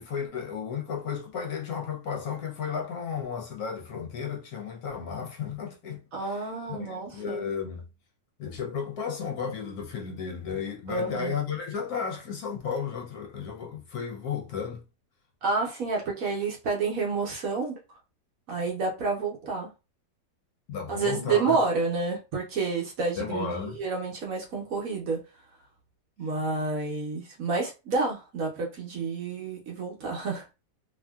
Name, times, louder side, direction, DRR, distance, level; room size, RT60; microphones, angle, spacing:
voice 1, 0.0-7.8 8.4-14.8 20.7-21.6 23.2-23.8, left 6 dB, 70° left, 1.0 m, -34 dB
voice 2, 6.1-7.4 10.9-11.3 15.4-17.7 18.5-19.7 20.9-25.2 26.2-30.4, right 4 dB, 60° right, 1.0 m, -29 dB
2.7 x 2.6 x 2.2 m
omnidirectional pair, 1.8 m